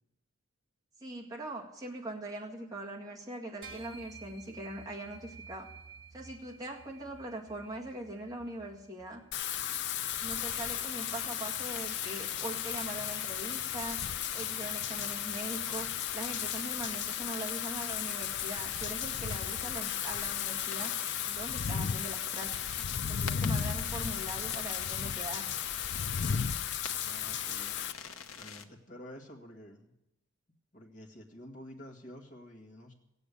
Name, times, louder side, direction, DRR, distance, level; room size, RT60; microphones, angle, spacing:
voice 1, 1.0-5.7 6.1-9.2 10.2-14.0 14.3-20.9 21.3-25.5, right 1 dB, 15° right, -2 dB, 2.0 m, -42 dB
sound 1, 3.6-9.2, right 4 dB, 60° right, 3.7 m, -52 dB
Wind / Rain, 9.3-27.9, left 9 dB, 55° left, 0.5 m, -35 dB
sound 2, 10.3-28.6, left 6 dB, 75° left, 1.0 m, -47 dB
voice 2, 27.0-27.8 28.3-29.9 30.7-32.9, left 1 dB, 35° left, 0 dB, 2.0 m, -50 dB
16.0 x 8.2 x 8.5 m, 0.89 s
head